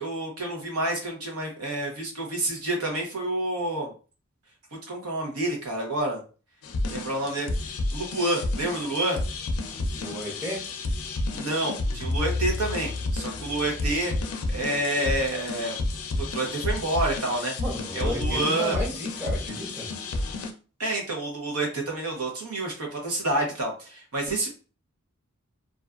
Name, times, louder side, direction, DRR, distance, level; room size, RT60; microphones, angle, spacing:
voice 1, 0.0-3.9 4.9-6.2 6.9-7.5 7.9-9.2 11.3-14.1 14.5-15.8 16.2-17.5 17.9-18.8 20.8-24.5, right 1 dB, 85° right, 1 dB, 0.8 m, -28 dB
sound 1, 6.6-20.5, left 2 dB, 80° left, 0.4 m, -31 dB
voice 2, 9.9-10.6 17.6-19.9, equal, 10° right, -4 dB, 0.8 m, -33 dB
2.5 x 2.3 x 2.3 m, 0.36 s
head